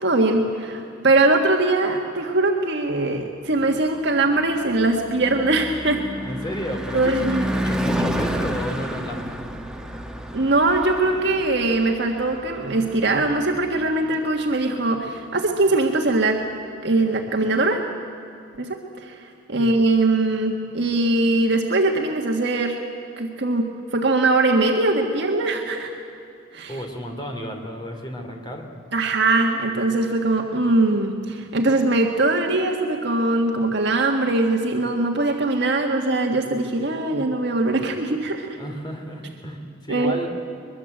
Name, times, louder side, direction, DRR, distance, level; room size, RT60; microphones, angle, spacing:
voice 1, 0.0-6.0 6.9-7.5 10.3-16.4 16.8-17.8 18.6-22.8 23.2-25.9 26.5-26.8 28.9-38.6 39.9-40.2, right 2 dB, 60° right, 2 dB, 1.6 m, -21 dB
Car passing by / Truck / Engine, 3.8-14.1, equal, 5° right, 1.2 m, -30 dB
voice 2, 6.2-9.4 19.6-19.7 26.7-28.7 38.6-40.3, equal, 20° left, 3 dB, 2.9 m, -32 dB
23.0 x 22.0 x 7.9 m, 2.7 s
head